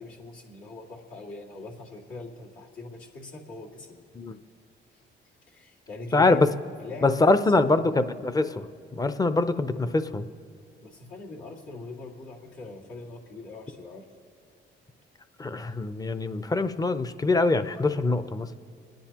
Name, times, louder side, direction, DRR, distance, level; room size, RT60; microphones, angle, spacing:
voice 1, 0.0-4.0 5.5-7.3 7.6-8.0 10.8-14.1, left 3 dB, 80° left, -4 dB, 2.2 m, -42 dB
voice 2, 6.1-6.5 7.0-8.7 9.0-10.2 15.4-18.5, left 3 dB, 20° left, 11 dB, 0.6 m, -23 dB
27.5 x 10.5 x 2.9 m, 2.4 s
cardioid pair, 90°, 20 cm